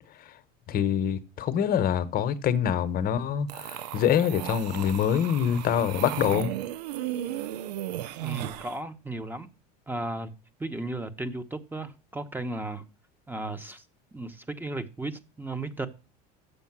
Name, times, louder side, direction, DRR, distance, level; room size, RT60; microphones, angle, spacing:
voice 1, 0.7-6.5, left 9 dB, 45° left, 0.9 m, -25 dB
sound 1, 3.5-8.8, right 13 dB, 85° right, 0.5 m, -35 dB
voice 2, 8.2-9.5 9.9-10.3 10.6-12.8 13.3-13.8 14.1-15.9, right 2 dB, 10° right, 0.9 m, -35 dB
7.0 x 6.7 x 5.9 m
supercardioid pair, 95°, 21 cm